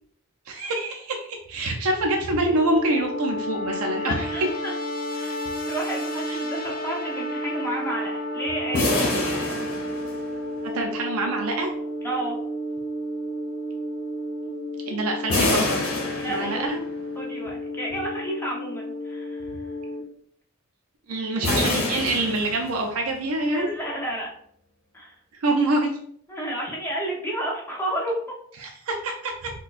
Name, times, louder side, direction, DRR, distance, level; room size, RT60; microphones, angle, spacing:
voice 1, 0.5-4.3 6.3-6.4 10.6-11.7 14.9-15.8 16.3-16.8 21.1-23.7 25.4-25.9 28.6-29.5, right 2 dB, 80° right, 2 dB, 0.5 m, -26 dB
sound 1, 2.3-20.0, equal, 45° left, 0.6 m, -31 dB
voice 2, 4.0-4.7 5.1-8.9 12.0-12.4 16.2-16.7 17.1-19.5 23.4-24.3 24.9-25.2 26.3-28.2, right 1 dB, 10° left, -3 dB, 0.8 m, -31 dB
sound 2, 8.7-10.6 15.3-16.9 21.4-23.1, left 2 dB, 70° left, 0.8 m, -26 dB
4.1 x 2.2 x 2.4 m, 0.63 s
head